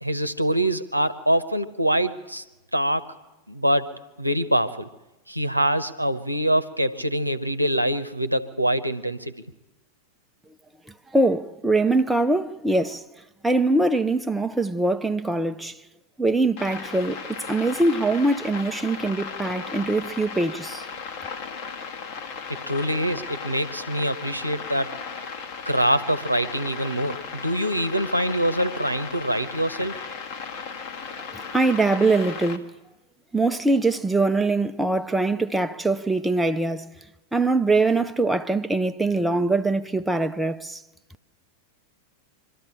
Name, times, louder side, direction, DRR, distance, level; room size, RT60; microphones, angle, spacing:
voice 1, 0.0-2.4 2.7-3.1 3.5-4.9 5.3-9.3 22.5-25.0 25.7-30.0, right 1 dB, 90° right, 0.8 m, -24 dB
voice 2, 11.1-13.0 13.4-15.8 16.2-20.8 31.3-32.7 33.3-36.9 37.3-40.8, right 2 dB, 5° right, 0.6 m, -23 dB
sound 1, 16.6-32.6, left 5 dB, 45° left, 1.5 m, -36 dB
23.5 x 13.0 x 8.9 m
figure-of-eight pair, 90°, 0 cm